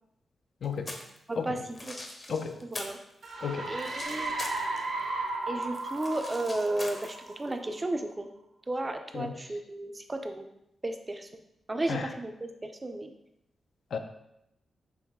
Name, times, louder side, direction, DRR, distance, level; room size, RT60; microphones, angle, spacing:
voice 1, 0.6-0.9 1.4-1.5 2.3-2.6 3.4-3.7 9.1-9.3 11.9-12.1 13.9-14.0, left 6 dB, 70° left, 6 dB, 0.5 m, -32 dB
sound 1, 0.6-1.2 1.6-3.0 3.3-5.0 5.3-7.5, left 2 dB, 30° left, 0.7 m, -42 dB
voice 2, 1.3-1.9 2.6-3.0 3.7-4.3 5.5-8.3 8.7-10.5 10.8-11.3 11.7-13.1, right 2 dB, 20° right, 6 dB, 0.4 m, -33 dB
sound 2, 3.2-7.8, right 2 dB, 75° right, 0.9 m, -35 dB
4.7 x 3.0 x 3.6 m, 0.80 s
wide cardioid pair, 110°, 0 cm